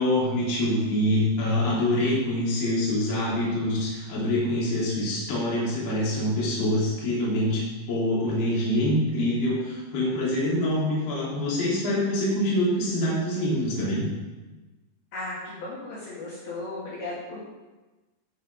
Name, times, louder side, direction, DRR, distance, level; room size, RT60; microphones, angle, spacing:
voice 1, 0.0-7.6 7.9-14.1, left 1 dB, 35° left, -7 dB, 3.6 m, -25 dB
voice 2, 15.1-17.4, left 2 dB, 60° left, -8 dB, 3.9 m, -35 dB
11.0 x 6.0 x 5.3 m, 1.2 s
omnidirectional pair, 5.3 m